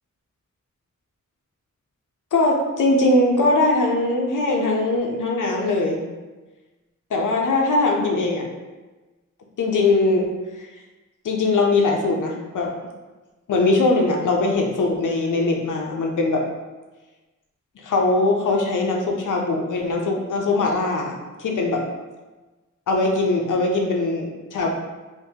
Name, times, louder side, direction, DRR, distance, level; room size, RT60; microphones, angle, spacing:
voice 1, 2.3-6.0 7.1-8.5 9.6-10.3 10.6-10.7 11.2-12.7 13.5-16.4 17.8-21.1 21.4-21.8 22.9-24.7, left 2 dB, 80° left, 1 dB, 0.6 m, -21 dB
3.6 x 2.6 x 2.7 m, 1.2 s
wide cardioid pair, 95°, 31 cm